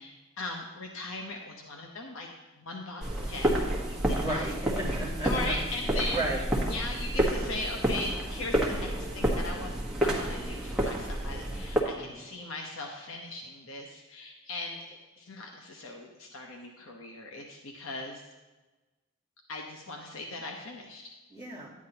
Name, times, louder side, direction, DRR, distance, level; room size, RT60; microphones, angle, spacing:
voice 1, 0.0-2.3 2.6-3.5 3.9-4.5 5.2-6.2 6.7-9.7 10.0-18.2 19.5-21.1, left 2 dB, 70° left, 1 dB, 0.9 m, -39 dB
sound 1, 3.0-11.8, right 1 dB, 5° right, 1.3 m, -29 dB
voice 2, 4.2-5.5 6.1-6.4 11.9-12.2 21.3-21.7, right 2 dB, 30° left, -6 dB, 2.7 m, -34 dB
10.5 x 9.5 x 2.9 m, 1.2 s
head